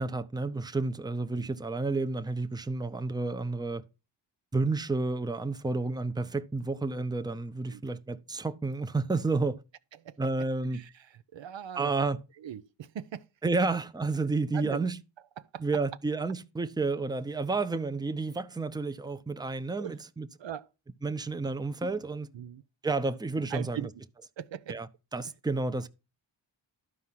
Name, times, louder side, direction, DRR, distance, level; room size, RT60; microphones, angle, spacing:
voice 1, 0.0-3.8 4.5-9.6 10.2-10.8 11.8-12.2 13.4-15.0 15.6-20.3 21.0-22.3 22.8-23.8 24.7-24.9 25.1-25.9, right 3 dB, 10° right, 0.6 m, -30 dB
voice 2, 9.9-11.9 12.4-13.3 14.5-14.9 15.4-15.6 19.8-20.0 20.4-20.7 22.3-22.6 23.5-23.9 24.4-24.8, right 9 dB, 65° right, 0.6 m, -40 dB
11.5 x 4.7 x 5.6 m
cardioid pair, 45°, 48 cm